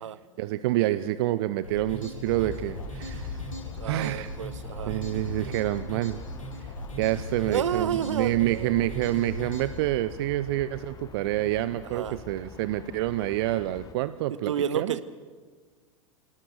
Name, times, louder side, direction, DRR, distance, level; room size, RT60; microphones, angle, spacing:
voice 1, 0.4-3.4 3.9-4.3 4.9-6.2 7.0-15.0, right 15 dB, 50° right, 14 dB, 0.7 m, -28 dB
sound 1, 1.6-9.8, equal, 90° left, 4.3 m, -38 dB
Aircraft, 2.3-13.9, left 7 dB, 20° left, 1.2 m, -44 dB
voice 2, 3.8-5.0 7.5-8.8 11.9-12.2 14.5-15.0, right 8 dB, 65° right, 16 dB, 1.1 m, -30 dB
27.5 x 19.5 x 6.7 m, 1.4 s
figure-of-eight pair, 90°, 17 cm